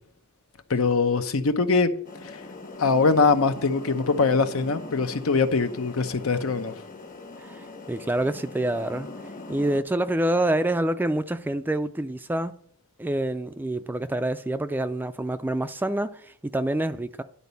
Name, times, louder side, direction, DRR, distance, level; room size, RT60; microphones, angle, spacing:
voice 1, 0.7-1.9 2.2-2.4 2.8-6.7, left 4 dB, 80° left, 0.8 m, -22 dB
sound 1, 2.0-9.8, left 2 dB, 40° left, 1.1 m, -41 dB
voice 2, 7.4-9.1 9.5-12.5 13.0-17.2, right 1 dB, 10° right, 0.3 m, -27 dB
11.5 x 4.1 x 6.8 m
head